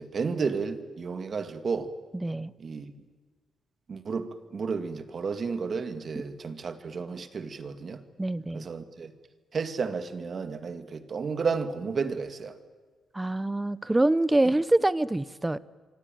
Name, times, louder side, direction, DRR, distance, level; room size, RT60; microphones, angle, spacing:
voice 1, 0.0-1.9 2.6-2.9 3.9-8.0 8.5-9.1 9.5-12.6 14.4-14.5, right 5 dB, 45° right, 2.0 m, -32 dB
voice 2, 8.2-8.6 13.1-15.6, right 2 dB, 15° right, 0.7 m, -25 dB
26.0 x 24.5 x 9.1 m
cardioid pair, 105°, 0 cm